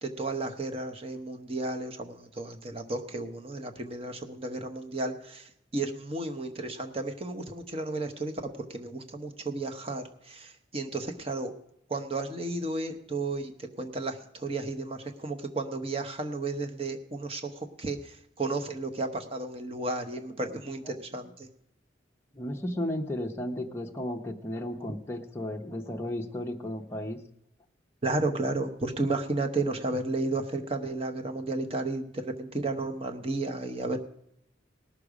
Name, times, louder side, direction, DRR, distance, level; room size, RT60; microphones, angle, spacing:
voice 1, 0.0-11.5 11.9-21.5 28.0-34.0, right 2 dB, 30° right, 5 dB, 1.0 m, -33 dB
voice 2, 22.3-27.2, left 1 dB, 15° left, 1 dB, 0.8 m, -34 dB
18.5 x 6.7 x 4.9 m, 0.77 s
head